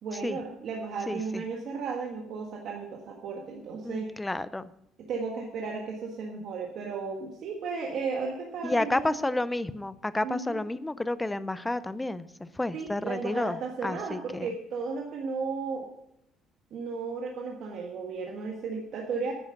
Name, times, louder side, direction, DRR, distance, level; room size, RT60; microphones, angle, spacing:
voice 1, 0.0-4.1 5.1-9.0 10.2-10.6 12.7-15.9 16.7-19.3, right 4 dB, 50° right, 0 dB, 1.5 m, -34 dB
voice 2, 1.1-1.4 3.8-4.7 8.6-14.5, left 2 dB, 10° left, 15 dB, 0.4 m, -31 dB
9.8 x 9.5 x 6.4 m, 0.78 s
cardioid pair, 170°, 0 cm